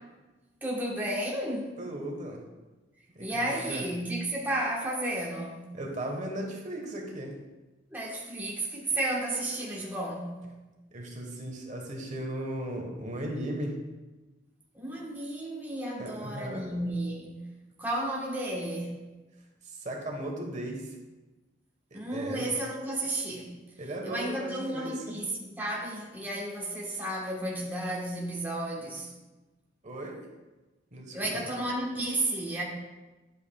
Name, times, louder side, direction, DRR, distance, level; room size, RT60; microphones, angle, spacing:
voice 1, 0.6-1.8 3.2-5.7 7.9-10.4 14.7-17.5 17.8-19.0 21.9-23.6 24.0-29.1 31.1-32.6, right 1 dB, 10° right, 1.2 m, -32 dB
voice 2, 1.8-2.4 3.1-3.8 5.7-7.3 10.9-13.8 16.0-16.7 19.6-21.0 21.9-22.5 23.8-25.2 29.8-30.2 30.9-31.5, right 1 dB, 40° right, 1.2 m, -37 dB
10.5 x 8.2 x 2.3 m
head